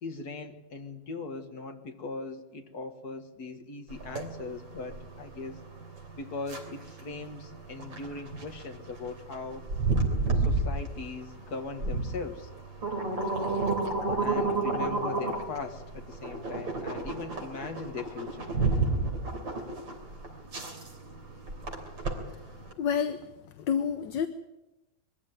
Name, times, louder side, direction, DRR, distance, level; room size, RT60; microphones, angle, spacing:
voice 1, 0.0-5.6 6.1-9.6 10.4-12.5 14.2-18.5, left 3 dB, 55° left, 6 dB, 2.3 m, -39 dB
sound 1, 3.9-22.7, right 3 dB, 85° right, 4.2 m, -31 dB
voice 2, 22.8-23.3 23.6-24.3, left 7 dB, 75° left, 9 dB, 1.6 m, -28 dB
22.5 x 15.0 x 9.4 m, 1.0 s
omnidirectional pair, 2.0 m